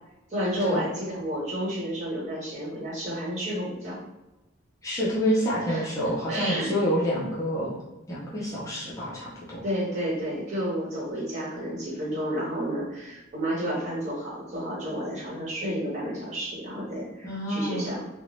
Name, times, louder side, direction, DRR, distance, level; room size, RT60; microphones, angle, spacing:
voice 1, 0.3-4.0 5.7-5.9 6.3-6.7 9.6-18.0, equal, 35° right, -7 dB, 1.0 m, -31 dB
voice 2, 4.8-7.7 8.1-9.6 17.2-17.9, equal, 15° left, -7 dB, 0.4 m, -27 dB
2.5 x 2.0 x 3.1 m, 1.0 s
head